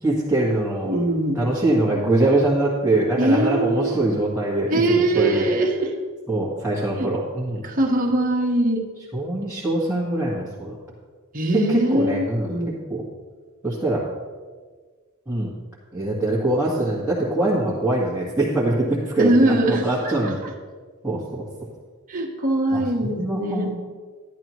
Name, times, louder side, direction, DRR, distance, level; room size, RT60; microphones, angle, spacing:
voice 1, 0.0-0.9 1.3-5.5 6.3-7.7 9.1-10.8 11.5-12.5 12.9-13.0 13.6-14.0 15.3-15.5 15.9-20.4 21.0-21.5 22.7-23.8, right 2 dB, 10° right, -9 dB, 1.7 m, -23 dB
voice 2, 0.8-1.4 3.2-4.1 4.7-5.9 7.0-7.1 7.6-8.9 11.3-12.8 19.2-20.3 22.1-23.7, right 1 dB, 40° right, -1 dB, 1.4 m, -22 dB
12.5 x 11.0 x 3.1 m, 1.5 s
head